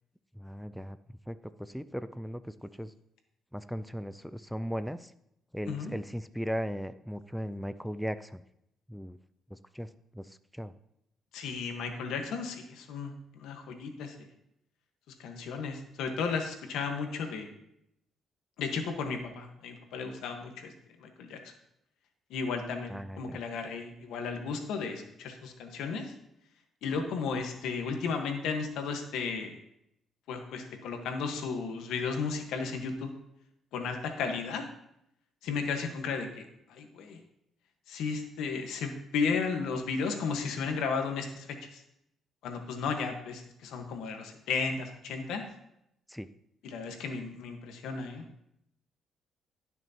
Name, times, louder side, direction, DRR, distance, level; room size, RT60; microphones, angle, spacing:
voice 1, 0.4-1.0 1.3-2.9 3.5-5.1 5.5-8.4 8.9-9.2 9.5-9.9 10.1-10.7 22.9-23.4 46.1-46.3, equal, ahead, 13 dB, 0.4 m, -37 dB
voice 2, 11.3-14.3 15.2-17.5 18.6-20.7 21.0-21.5 22.3-26.1 26.8-29.6 30.3-33.1 33.7-34.6 35.4-37.2 37.9-41.8 42.4-45.4 46.6-48.2, left 5 dB, 85° left, 5 dB, 1.4 m, -34 dB
18.0 x 6.2 x 2.9 m, 0.80 s
cardioid pair, 90°, 0 cm